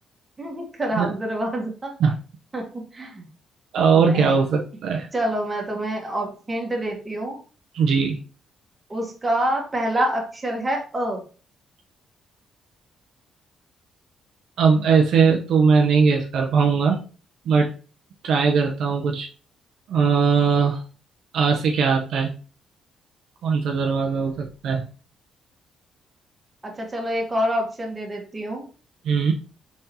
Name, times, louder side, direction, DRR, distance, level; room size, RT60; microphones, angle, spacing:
voice 1, 0.4-1.9 2.5-3.3 3.9-4.2 5.1-7.4 8.9-11.2 26.6-28.6, right 1 dB, 25° right, 1 dB, 1.4 m, -27 dB
voice 2, 3.7-5.1 7.7-8.2 14.6-17.0 17.5-17.7 18.2-19.3 19.9-20.8 21.3-22.3 23.4-24.9 29.0-29.3, right 5 dB, 75° right, 2 dB, 0.6 m, -20 dB
4.1 x 3.7 x 2.7 m, 0.36 s
cardioid pair, 90°, 0 cm